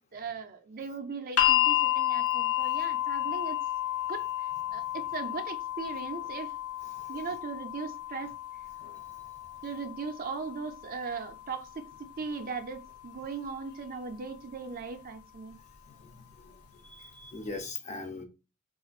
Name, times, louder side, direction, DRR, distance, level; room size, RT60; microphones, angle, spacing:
voice 1, 0.1-3.6 4.1-4.2 4.7-6.5 7.1-8.3 9.6-11.8 12.2-15.6, right 5 dB, 40° right, 0.5 m, -38 dB
sound 1, 1.4-13.5 14.5-14.6, left 13 dB, 80° left, 0.6 m, -32 dB
voice 2, 15.9-18.2, left 3 dB, 30° left, 0.6 m, -42 dB
4.2 x 2.4 x 2.4 m
head